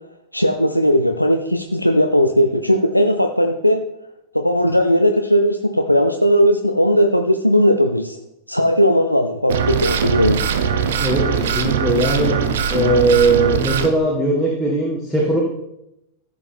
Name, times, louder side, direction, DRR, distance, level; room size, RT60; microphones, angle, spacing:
voice 1, 0.3-3.8 4.3-8.2 8.5-10.4, equal, 90° left, 5 dB, 0.5 m, -17 dB
sound 1, 9.5-13.9, right 7 dB, 60° right, 0.8 m, -21 dB
voice 2, 11.0-12.4 12.7-15.4, right 2 dB, ahead, -4 dB, 1.9 m, -19 dB
14.5 x 6.6 x 3.5 m, 0.83 s
figure-of-eight pair, 90°, 0 cm